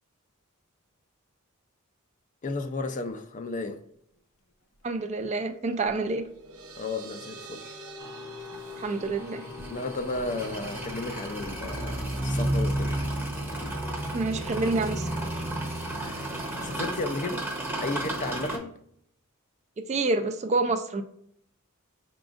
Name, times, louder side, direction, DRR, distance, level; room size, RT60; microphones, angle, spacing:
voice 1, 2.4-3.8 6.8-7.8 9.7-13.0 16.0-16.3 16.6-17.5 17.8-18.7, left 3 dB, 35° left, 0.4 m, -33 dB
sound 1, 3.1-3.2 4.7-6.0 8.2-9.2 9.6-13.8, left 1 dB, 80° left, 0.9 m, -48 dB
voice 2, 4.8-6.2 8.8-9.4 14.1-15.1 15.3-15.5 19.8-21.0, right 3 dB, 30° right, 0.3 m, -28 dB
sound 2, 6.0-13.1, left 2 dB, 75° right, 0.7 m, -45 dB
sound 3, 8.0-18.6, right 1 dB, 10° right, 0.8 m, -32 dB
5.8 x 3.8 x 2.4 m
head